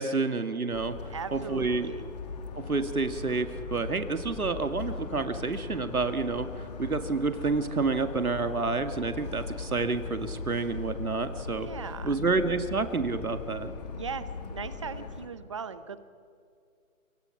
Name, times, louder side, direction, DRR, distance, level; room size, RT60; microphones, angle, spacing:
voice 1, 0.0-1.9 2.6-11.7 12.0-13.7, right 4 dB, 85° right, 9 dB, 2.1 m, -29 dB
Motor vehicle (road) / Siren, 0.7-15.3, left 4 dB, 30° left, 2.3 m, -39 dB
voice 2, 1.1-2.0 11.6-12.2 13.9-16.0, right 6 dB, 20° right, 14 dB, 0.8 m, -38 dB
28.5 x 25.0 x 5.9 m, 2.4 s
figure-of-eight pair, 155°, 42 cm